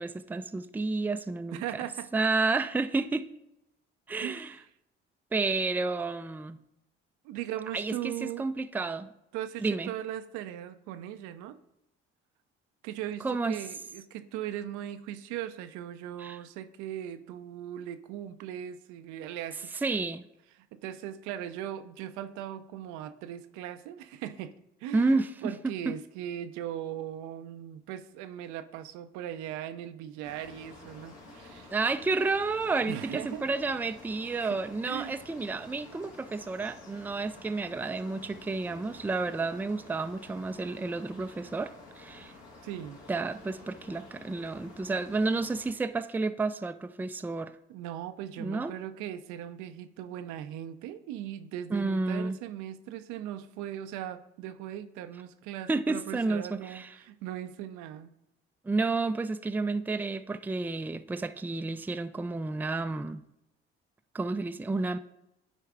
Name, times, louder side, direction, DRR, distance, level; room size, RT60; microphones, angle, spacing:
voice 1, 0.0-1.6 2.1-3.3 4.1-4.6 5.3-6.6 7.7-9.1 9.6-9.9 13.2-13.6 16.2-16.4 19.8-20.2 24.9-25.3 25.9-26.0 31.7-42.3 43.1-47.6 48.4-48.7 51.7-52.4 55.7-56.9 58.6-63.2 64.1-65.0, right 3 dB, 5° right, 0.4 m, -31 dB
voice 2, 1.5-2.1 4.2-4.6 7.2-8.5 9.3-11.6 12.8-19.7 20.7-24.5 24.8-31.7 32.8-33.5 34.4-35.2 42.6-43.0 47.7-58.1, right 11 dB, 75° right, 0.6 m, -39 dB
sound 1, 30.2-45.7, left 2 dB, 60° left, 1.8 m, -50 dB
9.9 x 4.6 x 3.6 m
hypercardioid pair, 55°, 29 cm